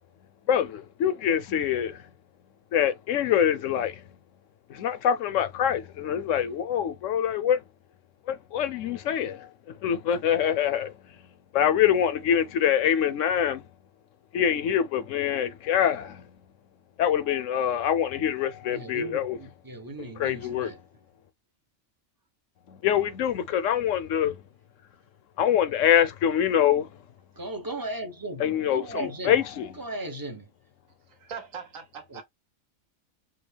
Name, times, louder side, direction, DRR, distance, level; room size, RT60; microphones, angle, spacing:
voice 1, 0.5-2.0 2.7-4.0 4.7-7.6 8.3-9.5 9.8-10.9 11.5-13.6 14.3-16.2 17.0-19.4 20.0-20.8 22.7-24.4 25.4-26.9 28.4-29.7, left 9 dB, 70° left, 0.9 m, -25 dB
voice 2, 18.7-20.8 27.4-29.4 29.8-30.5 32.1-32.2, right 1 dB, 20° right, 0.6 m, -37 dB
voice 3, 31.1-32.2, right 6 dB, 70° right, 1.5 m, -40 dB
4.7 x 2.1 x 3.3 m
omnidirectional pair, 1.4 m